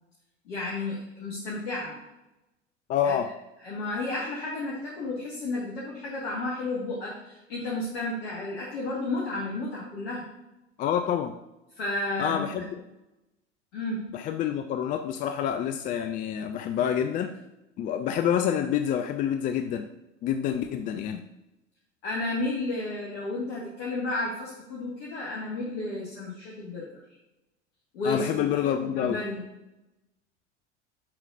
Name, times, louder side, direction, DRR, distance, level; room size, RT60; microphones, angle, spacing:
voice 1, 0.5-2.0 3.0-3.2 3.6-10.3 11.7-12.6 13.7-14.0 22.0-27.0 27.9-28.3 28.8-29.4, left 2 dB, 60° left, -4 dB, 1.7 m, -32 dB
voice 2, 2.9-3.3 10.8-11.3 12.2-12.8 14.1-17.3 17.8-19.9 20.2-21.2 28.0-29.2, left 9 dB, 25° left, 8 dB, 0.3 m, -27 dB
8.5 x 6.3 x 2.5 m, 0.97 s
figure-of-eight pair, 80°, 35 cm